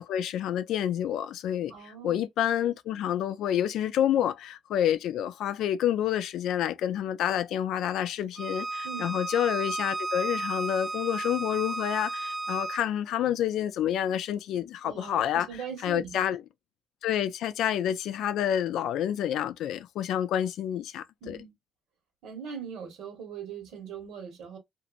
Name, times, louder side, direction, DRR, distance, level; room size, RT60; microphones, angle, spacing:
voice 1, 0.0-15.5 15.8-16.4 17.0-21.4, left 10 dB, 85° left, 0.3 m, -28 dB
voice 2, 1.7-2.2 8.8-9.1 14.8-16.2 21.2-21.5 22.2-24.6, right 7 dB, 85° right, 1.3 m, -40 dB
Bowed string instrument, 8.4-12.8, right 2 dB, 25° right, 0.4 m, -33 dB
2.9 x 2.5 x 2.4 m
cardioid pair, 90°, 0 cm